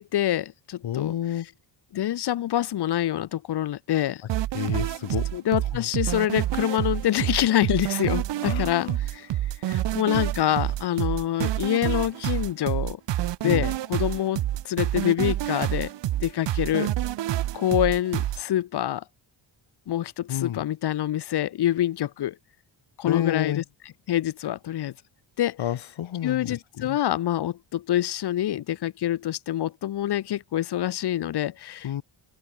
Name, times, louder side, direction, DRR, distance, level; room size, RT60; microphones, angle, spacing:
voice 1, 0.0-1.1 1.9-4.2 5.3-9.3 9.7-13.0 13.4-15.9 16.2-16.9 17.5-19.0 19.9-22.4 23.0-23.6 24.1-24.9 25.4-25.6 26.2-32.0, left 12 dB, 55° left, 0.9 m, -26 dB
voice 2, 0.8-1.5 4.5-5.3 5.7-5.9 8.4-9.0 13.4-13.6 20.3-20.6 23.1-23.6 25.6-27.0 31.8-32.0, left 11 dB, 70° left, 5.0 m, -30 dB
sound 1, 4.3-18.4, right 13 dB, 60° right, 1.0 m, -28 dB
open air
wide cardioid pair, 150°, 48 cm